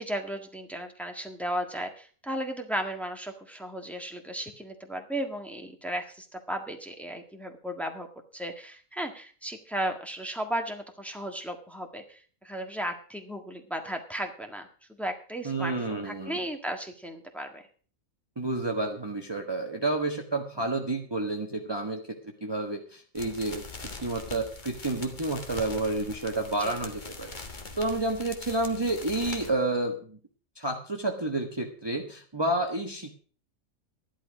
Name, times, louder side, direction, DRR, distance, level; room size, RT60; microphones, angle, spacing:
voice 1, 0.0-8.1 8.3-14.7 15.0-17.6 26.6-26.8, right 1 dB, ahead, 4 dB, 1.6 m, -35 dB
voice 2, 15.4-16.4 18.4-22.0 22.4-23.6 24.0-27.3 27.8-30.2 30.6-33.2, right 2 dB, 20° right, 2 dB, 1.2 m, -30 dB
sound 1, 23.1-29.5, left 3 dB, 35° left, 1.6 m, -42 dB
13.5 x 11.0 x 5.0 m, 0.42 s
omnidirectional pair, 1.4 m